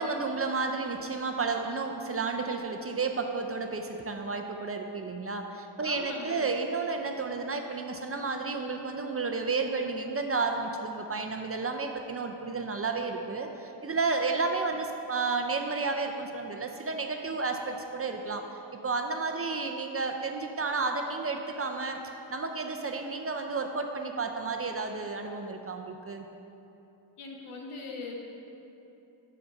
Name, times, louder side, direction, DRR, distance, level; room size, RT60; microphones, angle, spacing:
voice 1, 0.0-18.4 18.7-22.0 22.3-26.3, right 4 dB, 30° right, 4 dB, 0.4 m, -32 dB
voice 2, 5.8-6.5 27.2-28.2, left 3 dB, 85° left, -1 dB, 1.1 m, -40 dB
5.2 x 4.8 x 6.3 m, 3.0 s
cardioid pair, 85°, 49 cm